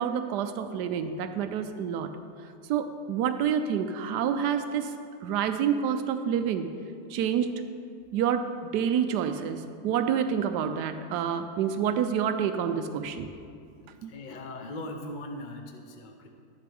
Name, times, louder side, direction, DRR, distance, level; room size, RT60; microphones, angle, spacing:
voice 1, 0.0-2.1 2.7-4.9 5.2-6.7 7.1-7.6 8.1-13.3 14.0-14.1, right 8 dB, 90° right, 8 dB, 1.2 m, -28 dB
voice 2, 14.0-16.3, left 1 dB, 40° left, 3 dB, 0.7 m, -40 dB
13.5 x 10.5 x 3.5 m, 2.4 s
omnidirectional pair, 1.7 m